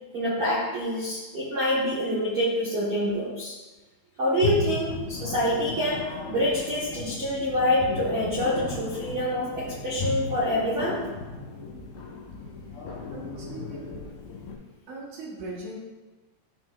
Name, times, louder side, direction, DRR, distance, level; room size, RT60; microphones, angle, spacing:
voice 1, 0.1-3.5 4.2-11.0, equal, 90° right, -9 dB, 1.2 m, -26 dB
sound 1, 4.4-14.5, left 3 dB, 65° left, 3.2 m, -35 dB
voice 2, 13.1-13.8 14.9-15.8, right 2 dB, 60° right, -4 dB, 2.0 m, -39 dB
13.0 x 6.0 x 2.6 m, 1.2 s
omnidirectional pair, 5.5 m